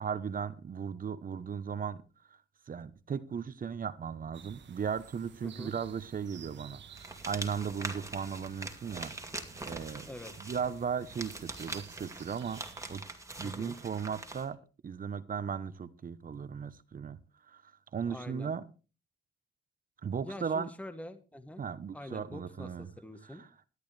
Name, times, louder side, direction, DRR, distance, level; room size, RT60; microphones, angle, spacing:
voice 1, 0.0-2.0 2.3-2.4 2.7-9.1 9.7-10.1 10.4-12.6 12.9-13.0 13.4-14.6 14.8-17.2 17.5-18.6 20.0-20.7 21.6-22.9 23.2-23.7, right 6 dB, 45° right, 15 dB, 0.9 m, -37 dB
sound 1, 4.3-13.0, right 7 dB, 65° right, 1.3 m, -53 dB
sound 2, 6.9-14.5, right 2 dB, 15° right, 2.3 m, -43 dB
voice 2, 10.0-10.3 13.4-13.8 18.1-18.6 20.2-21.6 21.9-23.4, left 1 dB, 5° left, 10 dB, 1.4 m, -45 dB
17.5 x 11.0 x 3.3 m, 0.35 s
cardioid pair, 90°, 20 cm